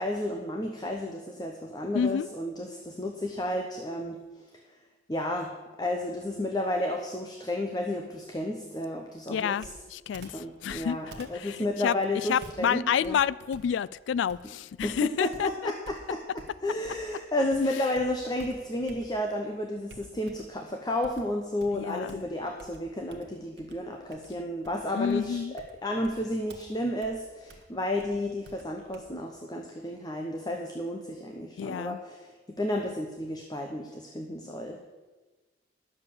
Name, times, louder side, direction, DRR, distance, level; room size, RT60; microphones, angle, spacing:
voice 1, 0.0-4.5 5.1-5.5 5.8-9.6 10.3-13.2 14.8-16.2 16.6-25.4 25.8-34.8, left 1 dB, 20° left, 0.8 m, -32 dB
voice 2, 1.9-2.3 9.3-11.9 12.2-15.7 17.8-17.9 21.7-22.2 24.9-25.5 31.6-32.0, left 8 dB, 85° left, 0.3 m, -29 dB
Computer keyboard, 9.6-17.2 17.5-19.4 19.9-20.6 21.0-29.0, right 1 dB, 65° right, 1.2 m, -51 dB
10.5 x 7.1 x 6.9 m
head